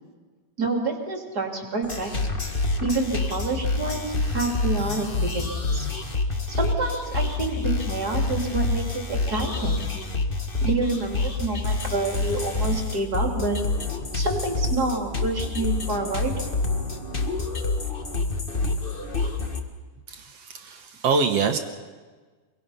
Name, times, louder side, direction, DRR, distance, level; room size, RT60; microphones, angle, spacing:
voice 1, 0.6-2.1 2.8-5.9 6.5-9.9 10.6-13.6 14.1-16.3, right 3 dB, 30° right, 1 dB, 3.5 m, -28 dB
sound 1, 1.8-19.6, left 3 dB, 30° left, 1.0 m, -27 dB
voice 2, 20.1-21.6, right 5 dB, 60° right, 6 dB, 2.1 m, -25 dB
26.5 x 22.5 x 5.7 m, 1.4 s
omnidirectional pair, 3.7 m